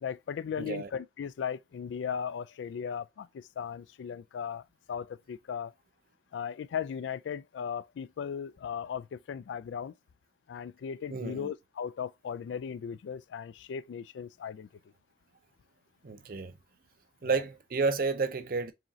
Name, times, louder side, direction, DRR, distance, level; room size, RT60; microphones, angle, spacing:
voice 1, 0.0-5.7 6.3-9.9 10.5-14.7 17.2-17.4, left 7 dB, 80° left, 0.3 m, -37 dB
voice 2, 0.6-0.9 11.1-11.5 16.0-16.5 17.2-18.7, right 4 dB, 50° right, 0.5 m, -31 dB
4.8 x 3.1 x 2.7 m
head